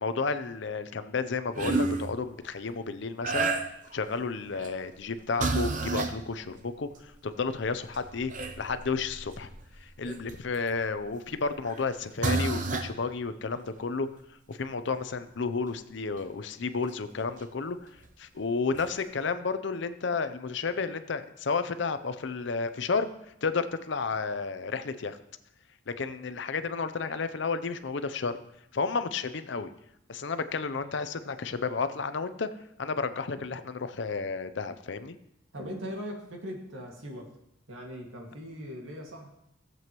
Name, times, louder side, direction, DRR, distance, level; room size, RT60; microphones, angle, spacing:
voice 1, 0.0-3.5 3.9-9.5 9.8-14.1 14.5-17.9 18.2-23.1 23.4-25.2 25.9-28.3 28.7-29.7 30.1-32.5 32.8-35.2, left 4 dB, 60° left, 11 dB, 0.6 m, -32 dB
sound 1, 1.5-2.1 3.2-4.0 4.5-4.8 5.4-6.2 7.0-7.1 7.5-10.7 11.6-11.8 12.2-12.9 16.2-16.3 18.0-18.1 18.7-18.9, right 3 dB, 40° right, 0.7 m, -30 dB
voice 2, 35.5-37.3 37.7-39.3, equal, 75° right, 0 dB, 2.0 m, -40 dB
15.5 x 7.8 x 3.0 m, 0.80 s
head